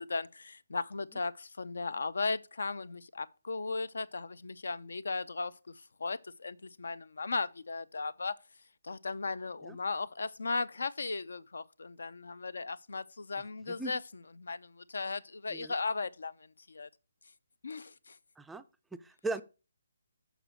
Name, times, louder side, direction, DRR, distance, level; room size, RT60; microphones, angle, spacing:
voice 1, 0.0-8.4 8.8-16.9 17.6-18.2, left 3 dB, 80° left, 0.6 m, -37 dB
voice 2, 13.7-14.0 15.5-15.7 18.4-18.6 18.9-19.4, right 3 dB, 5° right, 0.3 m, -38 dB
6.7 x 5.0 x 6.1 m
hypercardioid pair, 165°, 0 cm